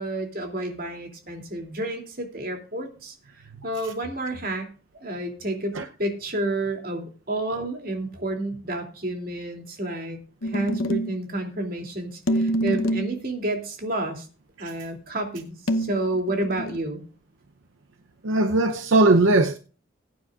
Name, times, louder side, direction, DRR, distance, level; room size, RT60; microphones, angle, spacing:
voice 1, 0.0-3.1 3.6-4.7 5.0-5.7 6.0-14.3 14.6-17.0, right 1 dB, 45° right, 2.8 m, -30 dB
sound 1, 10.4-11.2 12.3-13.2 15.7-16.8, equal, 85° left, 0.9 m, -26 dB
voice 2, 18.2-19.6, right 2 dB, 80° right, 0.7 m, -19 dB
20.5 x 9.3 x 2.4 m
head